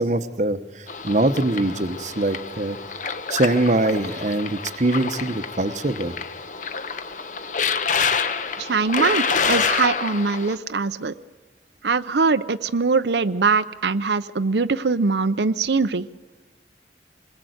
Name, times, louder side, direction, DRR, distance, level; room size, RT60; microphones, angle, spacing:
voice 1, 0.0-2.8 3.3-6.1, right 2 dB, 45° right, 11 dB, 0.9 m, -23 dB
sound 1, 0.9-10.5, left 5 dB, 45° left, 1.0 m, -27 dB
voice 2, 8.6-11.1 11.8-16.1, right 4 dB, 80° right, 12 dB, 0.7 m, -22 dB
25.5 x 21.0 x 8.0 m, 1.2 s
head